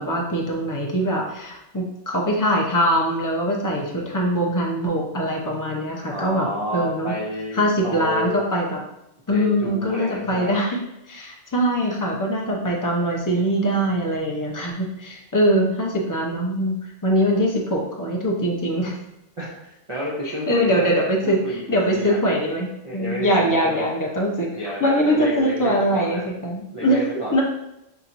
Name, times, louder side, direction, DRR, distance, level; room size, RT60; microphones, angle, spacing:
voice 1, 0.0-6.5 6.7-7.1 7.5-8.8 9.3-10.8 11.1-18.9 20.3-24.5 24.8-27.0 27.3-27.4, equal, 25° left, -1 dB, 0.5 m, -22 dB
voice 2, 6.1-8.4 9.3-10.6 19.4-22.2 22.8-23.8 24.5-26.3 26.7-27.4, equal, 30° right, -7 dB, 0.6 m, -30 dB
5.7 x 2.9 x 2.6 m, 0.86 s
omnidirectional pair, 1.3 m